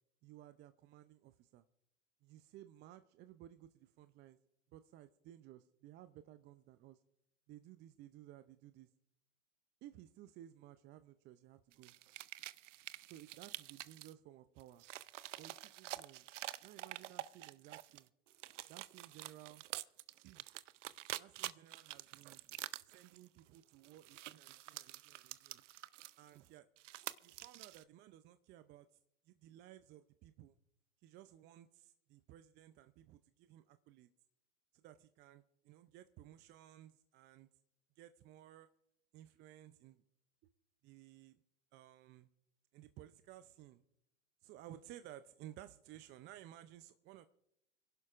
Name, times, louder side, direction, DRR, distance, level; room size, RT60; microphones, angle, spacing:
voice 1, 0.2-1.6 2.2-4.4 4.7-7.0 7.5-8.9 9.8-11.9 13.1-14.8 15.4-16.3 16.6-18.1 18.7-19.6 20.2-20.5 21.1-22.4 22.8-25.6 26.2-26.7 27.2-28.9 29.3-30.5 31.0-34.1 34.7-37.5 38.0-38.7 39.1-40.0 40.4-40.5 40.8-41.4 41.7-42.3 42.7-43.8 44.4-47.3, right 13 dB, 30° right, 11 dB, 0.5 m, -57 dB
sound 1, 11.7-14.1 14.6-18.0 18.3-26.5 26.8-27.8, right 15 dB, 70° right, 0.6 m, -48 dB
29.5 x 11.5 x 2.5 m, 0.78 s
hypercardioid pair, 105°, 39 cm